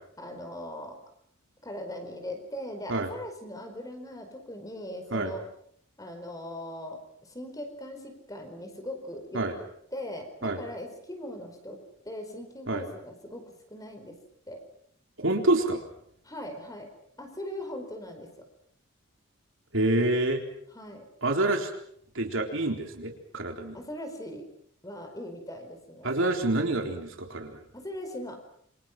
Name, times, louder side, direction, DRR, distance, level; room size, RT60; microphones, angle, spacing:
voice 1, 0.2-1.0 1.6-5.4 6.0-9.6 9.9-11.8 12.0-14.1 14.5-14.6 16.2-16.9 17.2-18.3 20.7-21.1 23.7-24.4 24.8-26.1 27.7-28.4, left 1 dB, 15° left, 6 dB, 4.7 m, -40 dB
voice 2, 15.2-15.8 19.7-20.4 21.2-21.7 22.1-23.8 26.0-27.6, right 2 dB, 65° right, 3 dB, 3.9 m, -27 dB
28.0 x 25.5 x 6.0 m, 0.67 s
head